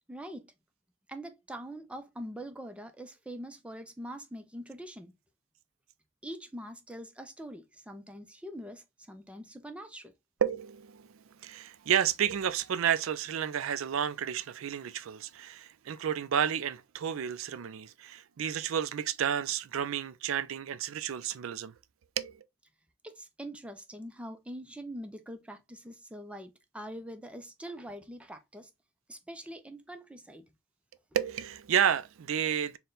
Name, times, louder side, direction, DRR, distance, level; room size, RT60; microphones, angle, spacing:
voice 1, 0.1-0.5 1.1-5.1 6.2-10.1 23.0-28.7 29.1-30.5, equal, 5° right, 0.4 m, -43 dB
voice 2, 10.4-11.1 11.4-21.7 22.2-22.4 31.1-32.8, right 8 dB, 70° right, 0.4 m, -31 dB
4.2 x 2.2 x 3.7 m
head